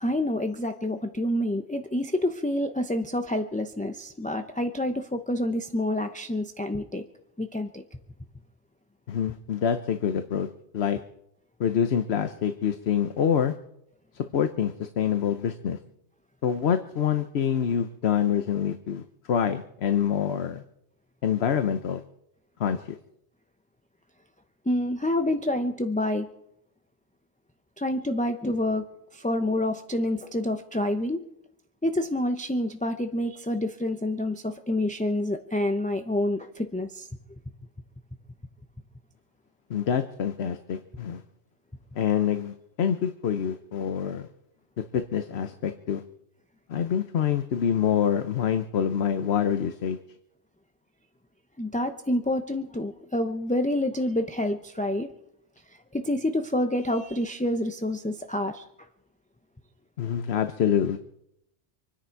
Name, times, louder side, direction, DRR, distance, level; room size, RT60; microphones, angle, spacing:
voice 1, 0.0-7.0 7.4-7.8 24.7-26.3 27.8-28.9 29.1-31.3 31.8-37.4 51.6-55.1 55.7-58.6, left 1 dB, 10° left, 6 dB, 0.6 m, -28 dB
voice 2, 9.1-10.5 10.7-11.0 11.6-13.5 14.3-15.8 16.4-20.6 21.2-22.0 22.6-23.0 39.7-41.2 41.9-44.3 44.8-46.0 46.7-50.0 60.0-61.0, left 8 dB, 70° left, 9 dB, 1.1 m, -26 dB
26.5 x 10.5 x 4.6 m, 0.77 s
omnidirectional pair, 1.1 m